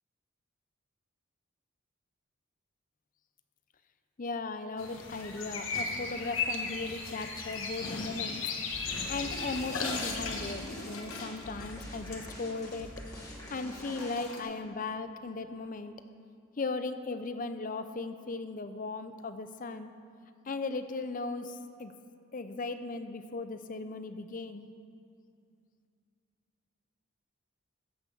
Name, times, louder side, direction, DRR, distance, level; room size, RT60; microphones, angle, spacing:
voice 1, 4.2-8.4 8.8-12.9 13.2-15.9 16.6-19.9 20.5-21.9 22.3-24.7, left 3 dB, 40° left, 10 dB, 0.5 m, -37 dB
sound 1, 4.8-10.5, left 4 dB, 70° left, 1.3 m, -36 dB
sound 2, 8.7-14.5, equal, 15° left, 1.7 m, -46 dB
sound 3, 9.2-14.4, left 2 dB, 85° left, 1.5 m, -44 dB
15.0 x 5.7 x 6.9 m, 2.4 s
head